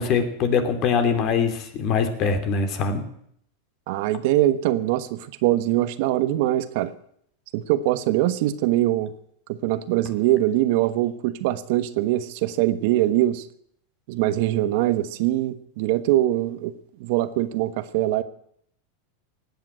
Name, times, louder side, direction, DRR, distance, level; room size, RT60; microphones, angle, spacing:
voice 1, 0.0-3.0, left 5 dB, 45° left, 8 dB, 2.9 m, -23 dB
voice 2, 3.9-6.9 7.5-9.1 9.5-13.5 14.1-16.7 17.0-18.2, right 14 dB, 60° right, 12 dB, 1.2 m, -22 dB
17.5 x 9.0 x 8.9 m, 0.68 s
supercardioid pair, 125°, 0 cm